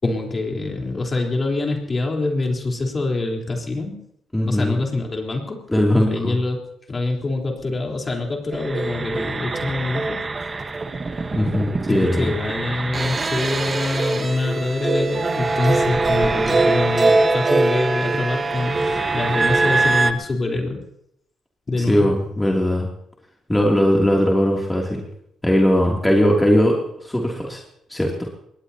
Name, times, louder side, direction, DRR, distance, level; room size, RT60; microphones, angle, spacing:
voice 1, 0.0-4.0 4.5-5.7 6.1-6.6 6.9-10.3 11.9-20.8 21.7-22.1, left 2 dB, 35° left, 1 dB, 3.9 m, -25 dB
voice 2, 4.3-4.8 5.7-6.3 11.3-12.3 21.9-22.9 23.5-25.0 25.4-26.8 27.0-27.6 27.9-28.3, equal, 10° left, -1 dB, 2.8 m, -19 dB
sound 1, 8.5-20.1, right 3 dB, 35° right, 1.3 m, -22 dB
21.5 x 18.5 x 2.9 m, 0.75 s
supercardioid pair, 70°, 0 cm